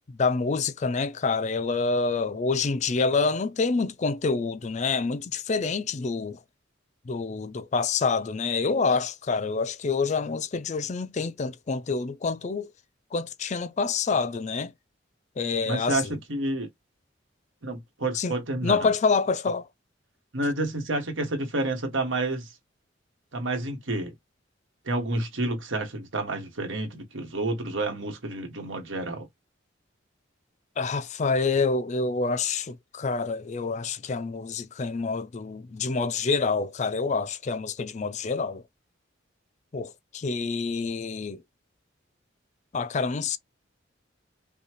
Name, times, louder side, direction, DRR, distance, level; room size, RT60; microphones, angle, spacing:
voice 1, 0.2-6.4 7.1-12.7 13.1-14.7 15.4-16.2 18.1-18.3 18.6-19.7 30.8-38.6 39.7-41.4 42.7-43.4, left 4 dB, 35° left, 0.4 m, -27 dB
voice 2, 15.7-16.7 17.6-18.9 20.3-22.5 23.3-24.1 24.8-29.3, right 2 dB, 85° right, 1.6 m, -29 dB
5.4 x 2.3 x 3.0 m
head